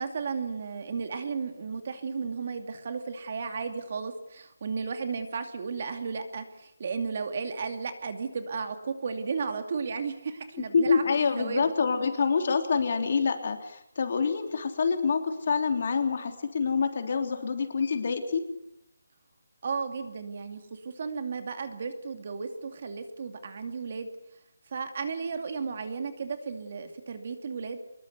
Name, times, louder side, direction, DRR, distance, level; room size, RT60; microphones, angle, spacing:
voice 1, 0.0-11.0 11.4-11.7 19.6-24.1 24.7-27.8, right 5 dB, 35° right, 7 dB, 2.6 m, -34 dB
voice 2, 10.5-18.4, left 5 dB, 40° left, 6 dB, 3.3 m, -26 dB
25.0 x 21.5 x 8.1 m, 0.79 s
hypercardioid pair, 175°, 0 cm